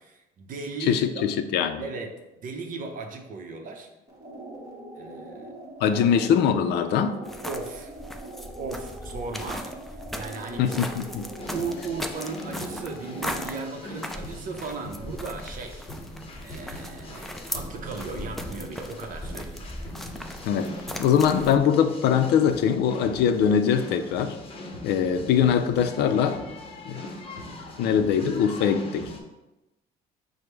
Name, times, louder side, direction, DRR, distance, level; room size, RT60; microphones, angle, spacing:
voice 1, 0.0-1.3 1.8-3.9 5.0-5.5 5.9-6.0 7.4-7.9 8.6-10.8 11.5-15.9 16.4-19.6, right 4 dB, 55° right, 4 dB, 0.7 m, -36 dB
voice 2, 0.9-1.8 5.8-7.2 10.6-11.3 20.4-20.7 21.0-24.4 24.8-26.4 26.9-27.1 27.8-29.1, left 8 dB, 75° left, 10 dB, 0.4 m, -22 dB
sound 1, 4.1-13.7, right 1 dB, 20° right, 1.1 m, -42 dB
sound 2, 7.2-21.6, equal, ahead, 0.3 m, -38 dB
sound 3, 11.4-29.2, left 1 dB, 35° left, 0.8 m, -41 dB
5.1 x 2.1 x 4.5 m, 0.99 s
cardioid pair, 110°, 17 cm